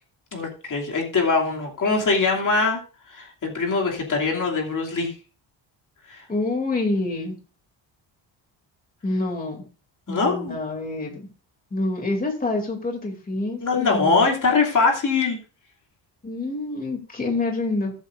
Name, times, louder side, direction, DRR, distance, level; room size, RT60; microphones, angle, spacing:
voice 1, 0.3-2.8 3.1-5.1 6.1-6.2 10.1-10.6 13.6-15.4, left 4 dB, 45° left, -1 dB, 2.9 m, -22 dB
voice 2, 6.3-7.4 9.0-9.6 10.1-11.3 11.7-14.3 16.2-17.9, left 2 dB, 20° left, 1 dB, 2.8 m, -27 dB
21.5 x 8.3 x 2.6 m, 0.35 s
cardioid pair, 140°, 44 cm